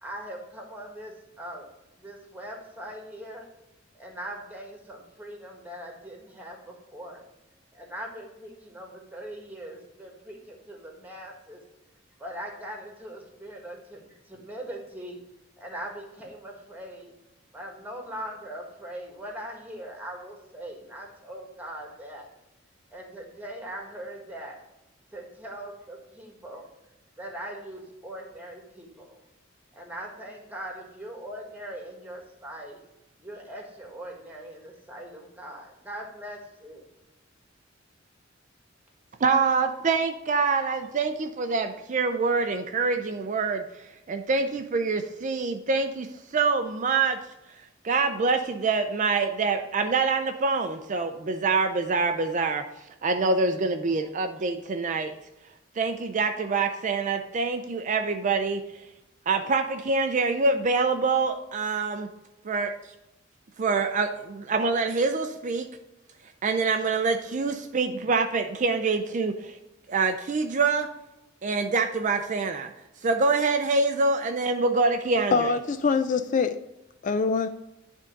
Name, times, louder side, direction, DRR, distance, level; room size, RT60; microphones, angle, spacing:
voice 1, 0.0-1.7 1.9-3.5 3.9-7.2 7.7-11.6 12.2-15.2 15.6-17.1 17.5-22.3 22.9-24.6 25.1-26.6 27.2-29.2 29.7-32.8 33.2-36.9, right 1 dB, 10° right, 1 dB, 1.6 m, -41 dB
voice 2, 39.2-47.2 47.8-55.1 55.8-58.9 59.3-62.1 62.5-62.7 63.6-65.7 66.4-69.6 69.9-70.9 71.4-72.7 73.0-75.5, right 4 dB, 40° right, 6 dB, 0.5 m, -25 dB
voice 3, 75.3-76.6 77.0-77.5, left 4 dB, 40° left, 10 dB, 0.3 m, -24 dB
10.0 x 3.7 x 5.1 m, 0.95 s
head